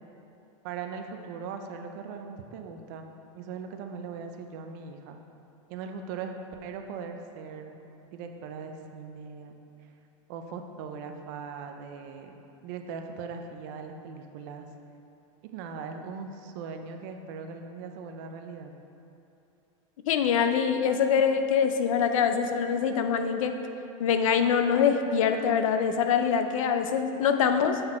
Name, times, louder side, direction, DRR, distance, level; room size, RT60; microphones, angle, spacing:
voice 1, 0.6-3.1 3.3-5.2 5.7-6.4 6.6-7.7 8.1-9.5 9.8-9.9 10.3-12.4 12.6-14.6 15.4-18.7, right 5 dB, 35° right, 5 dB, 0.4 m, -39 dB
voice 2, 20.1-23.5 24.0-27.8, left 7 dB, 85° left, 8 dB, 0.6 m, -24 dB
7.8 x 4.0 x 4.3 m, 2.7 s
supercardioid pair, 180°, 17 cm